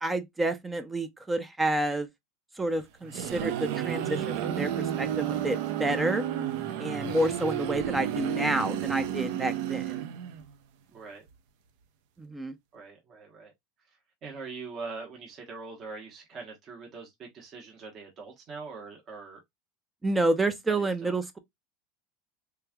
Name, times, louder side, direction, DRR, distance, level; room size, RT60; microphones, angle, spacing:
voice 1, 0.0-2.1 2.6-6.2 6.8-10.0 12.2-12.5 20.0-21.4, right 2 dB, 10° right, 0.4 m, -29 dB
sound 1, 2.8-10.5, right 10 dB, 70° right, 0.5 m, -31 dB
voice 2, 10.9-11.2 12.7-13.5 14.2-19.4 20.7-21.1, right 4 dB, 40° right, 1.0 m, -42 dB
3.4 x 3.1 x 2.2 m
supercardioid pair, 125°, 0 cm